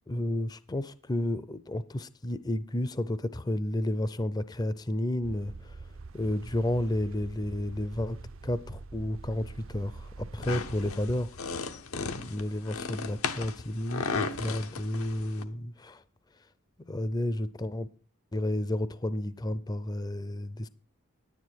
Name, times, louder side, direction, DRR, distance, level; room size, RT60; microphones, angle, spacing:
voice 1, 0.1-5.8 6.1-11.6 11.9-16.0 16.9-17.9 18.3-20.7, left 1 dB, 20° left, 0.5 m, -32 dB
sound 1, 5.2-10.9, right 3 dB, 65° right, 0.6 m, -45 dB
sound 2, 10.4-15.4, left 4 dB, 85° left, 0.9 m, -35 dB
10.5 x 9.7 x 4.5 m
head